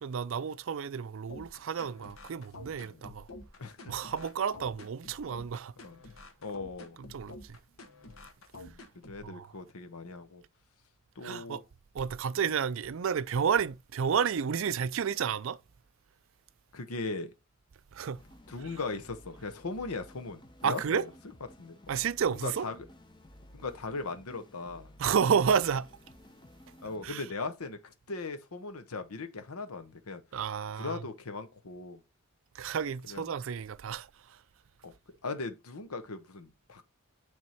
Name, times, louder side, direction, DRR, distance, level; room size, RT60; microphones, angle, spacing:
voice 1, 0.0-3.3 3.9-5.7 7.1-7.6 9.2-9.5 11.2-11.6 11.9-15.6 17.9-18.2 20.6-21.0 21.9-22.7 25.0-25.9 27.0-27.2 30.3-31.0 32.6-34.1, right 7 dB, 65° right, 0.4 m, -31 dB
sound 1, 1.3-9.3, left 2 dB, 65° left, 1.3 m, -49 dB
voice 2, 3.6-3.9 5.8-6.0 6.4-7.0 8.5-10.4 11.2-11.6 16.7-17.3 18.5-21.1 21.6-21.8 22.3-22.9 23.5-24.9 26.8-30.2 30.8-32.0 33.0-33.3 34.8-34.9 35.2-36.8, left 3 dB, 85° left, 1.0 m, -39 dB
sound 2, 18.2-27.1, left 1 dB, 20° left, 0.7 m, -55 dB
9.3 x 3.6 x 4.4 m
head